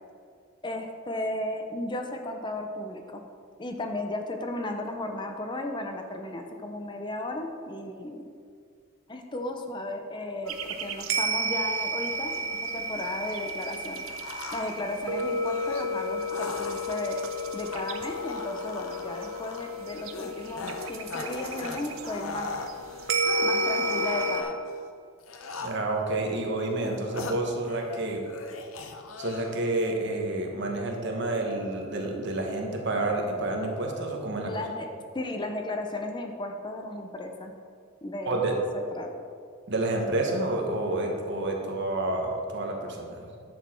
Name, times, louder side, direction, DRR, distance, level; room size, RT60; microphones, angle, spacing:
voice 1, 0.6-3.2 3.6-8.3 9.1-14.0 14.5-17.2 17.5-22.5 23.4-24.6 34.4-34.9 35.1-37.5 38.0-38.4 38.7-39.1, left 2 dB, 20° left, 4 dB, 0.6 m, -34 dB
sound 1, 10.5-24.4, right 1 dB, 80° right, 0.7 m, -32 dB
sound 2, 14.1-24.7 25.2-26.0 26.6-28.0 28.2-29.7, left 3 dB, 80° left, 0.8 m, -39 dB
voice 2, 25.6-28.3 29.2-34.5 38.3-38.6 39.7-43.3, right 2 dB, 60° right, 1 dB, 1.3 m, -29 dB
10.0 x 6.5 x 4.4 m, 2.3 s
head